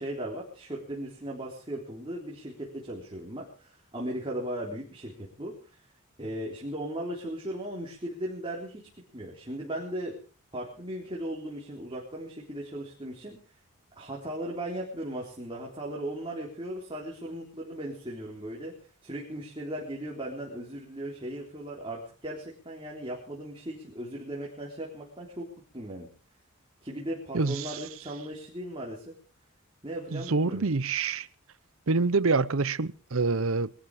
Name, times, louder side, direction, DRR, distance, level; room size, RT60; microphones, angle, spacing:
voice 1, 0.0-5.8 6.2-10.2 10.5-13.4 13.9-18.7 19.0-25.5 25.7-26.1 26.8-29.1 29.8-30.6, right 1 dB, 25° right, 3.8 m, -37 dB
voice 2, 27.3-27.7 30.1-31.3 31.9-33.7, right 3 dB, 75° right, 0.8 m, -26 dB
22.0 x 13.0 x 5.0 m
head